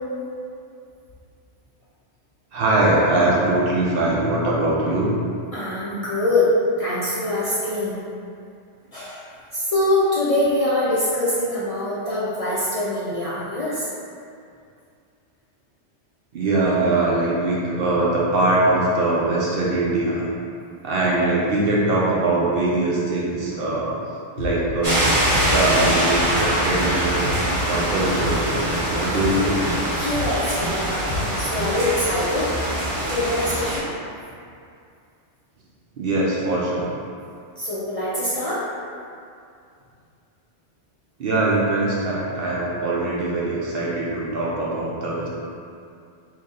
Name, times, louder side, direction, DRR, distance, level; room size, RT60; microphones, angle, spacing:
voice 1, 2.5-5.1 16.3-20.3 20.8-24.0 24.3-25.1 25.4-27.3 27.7-29.6 36.0-36.9 41.2-45.3, right 2 dB, 60° right, -5 dB, 0.7 m, -22 dB
voice 2, 5.5-6.5 6.8-8.0 8.9-9.2 9.5-13.9 16.6-16.7 30.0-32.5 33.1-33.9 37.6-38.6, left 1 dB, 45° left, -10 dB, 0.5 m, -24 dB
sound 1, 24.4-24.5 24.9-25.0 25.3-25.5 25.8-25.9 26.3-26.4 26.8-26.9 27.3-27.4 27.7-27.9 28.2-28.3 28.7-28.8 29.2-29.3 29.6-29.8 30.1-30.3 30.6-30.7 31.1-31.2 31.6-31.7, left 2 dB, 60° left, 0.9 m, -29 dB
sound 2, 24.8-33.8, right 1 dB, 30° right, 0.8 m, -23 dB
3.0 x 2.6 x 3.7 m, 2.4 s
omnidirectional pair, 1.2 m